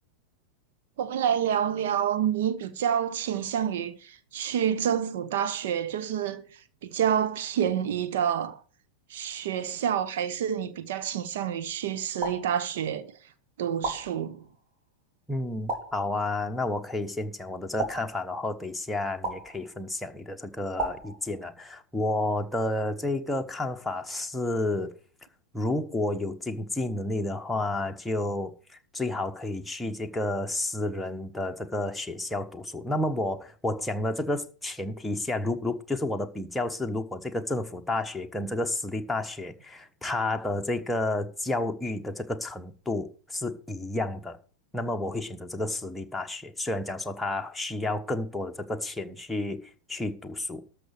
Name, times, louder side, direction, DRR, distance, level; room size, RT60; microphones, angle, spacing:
voice 1, 1.0-6.5 6.8-8.6 9.1-13.2 13.6-14.4, right 9 dB, 55° right, 1.1 m, -28 dB
sound 1, 12.2-13.1 13.8-14.7 15.7-16.5 17.8-18.7 19.2-20.0 20.8-21.8, right 2 dB, 40° right, 4.4 m, -36 dB
voice 2, 15.3-24.9 25.5-28.5 28.9-44.4 44.7-50.6, left 2 dB, 5° left, 1.3 m, -31 dB
13.0 x 5.9 x 6.7 m
figure-of-eight pair, 90°, 0 cm